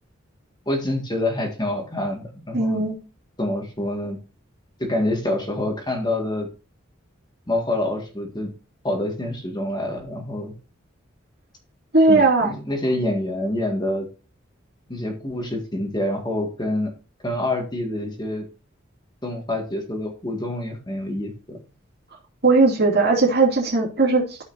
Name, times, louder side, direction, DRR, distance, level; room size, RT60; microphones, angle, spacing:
voice 1, 0.7-2.8 3.4-4.2 4.8-6.5 7.5-8.5 8.8-10.5 12.1-14.1 14.9-16.9 17.2-18.5 19.2-21.6, left 1 dB, 20° left, 2 dB, 1.8 m, -26 dB
voice 2, 2.5-3.0 11.9-12.5 22.4-24.4, right 3 dB, 55° right, -2 dB, 2.6 m, -18 dB
13.5 x 5.6 x 2.7 m, 0.33 s
head